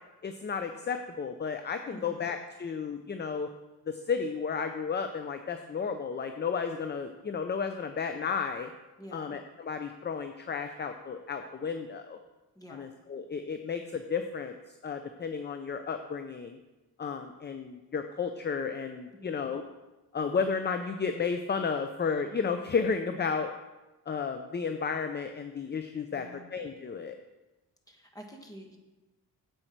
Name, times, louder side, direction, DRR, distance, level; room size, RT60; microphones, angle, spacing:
voice 1, 0.2-3.5 3.9-8.7 9.1-12.2 12.7-14.6 14.8-16.6 17.0-19.6 20.1-23.5 24.1-27.1, left 5 dB, 30° left, 7 dB, 0.5 m, -33 dB
voice 2, 1.9-2.3 9.0-9.3 12.5-12.9 19.1-19.4 26.1-26.6 27.9-28.8, equal, 10° left, 2 dB, 1.4 m, -48 dB
9.8 x 7.8 x 4.5 m, 1.1 s
wide cardioid pair, 130°, 39 cm